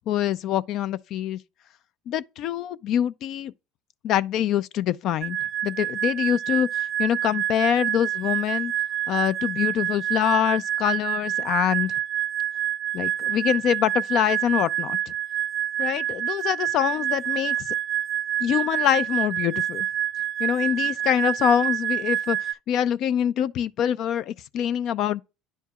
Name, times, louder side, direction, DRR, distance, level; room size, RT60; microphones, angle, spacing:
voice 1, 0.1-1.4 2.1-3.5 4.0-5.4 5.6-8.7 9.1-11.9 12.9-15.1 15.8-17.7 18.4-19.9 20.4-25.2, left 10 dB, 60° left, 0.4 m, -25 dB
sound 1, 5.2-22.5, right 11 dB, 50° right, 0.3 m, -27 dB
10.0 x 4.4 x 2.3 m
supercardioid pair, 90°, 0 cm